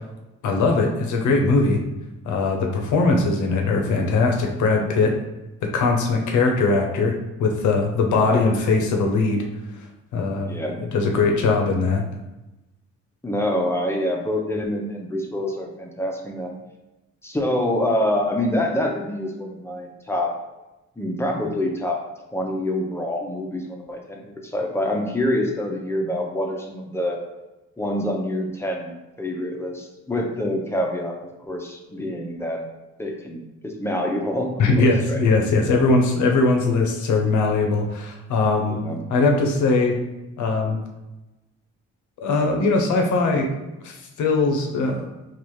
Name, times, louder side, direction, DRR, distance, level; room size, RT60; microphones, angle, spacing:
voice 1, 0.4-1.8 2.3-5.1 5.7-7.1 7.4-9.4 10.1-12.0 34.6-38.8 39.1-40.0 40.4-40.8 42.2-43.5 43.8-45.1, left 3 dB, 75° left, 2 dB, 0.8 m, -20 dB
voice 2, 10.4-10.8 13.2-16.5 17.2-20.3 21.0-22.0 22.3-27.2 27.8-28.9 29.2-31.2 31.4-32.6 33.0-35.2 38.7-39.0, left 1 dB, 10° left, 1 dB, 0.6 m, -26 dB
3.9 x 2.4 x 3.1 m, 1.0 s
cardioid pair, 90°, 30 cm